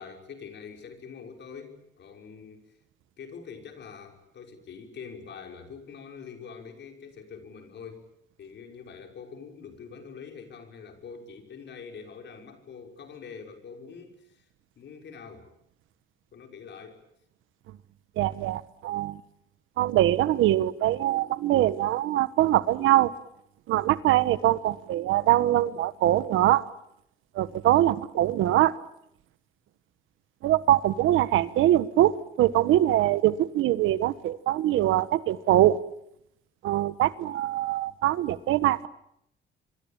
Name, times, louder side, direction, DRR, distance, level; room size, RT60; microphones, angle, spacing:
voice 1, 0.0-2.7 3.2-8.1 8.4-14.5 14.8-15.5 16.3-17.0, left 6 dB, 65° left, 4 dB, 6.0 m, -44 dB
voice 2, 18.2-19.2 19.8-23.1 23.7-26.6 27.3-28.7 30.4-35.8 36.6-38.9, right 13 dB, 85° right, 15 dB, 1.4 m, -23 dB
26.5 x 24.5 x 8.9 m, 0.76 s
cardioid pair, 90°, 20 cm